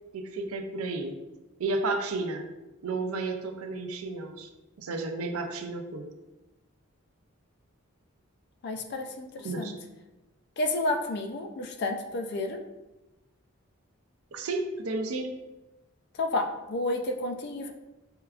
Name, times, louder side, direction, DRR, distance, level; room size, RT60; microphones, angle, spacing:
voice 1, 0.1-1.2 1.6-2.5 2.8-4.5 4.8-6.1 9.4-9.7 14.3-15.4, right 3 dB, 85° right, 5 dB, 0.4 m, -32 dB
voice 2, 8.6-9.7 10.6-12.6 16.1-17.7, left 2 dB, 50° left, 5 dB, 0.3 m, -31 dB
4.4 x 2.3 x 2.3 m, 1.0 s
head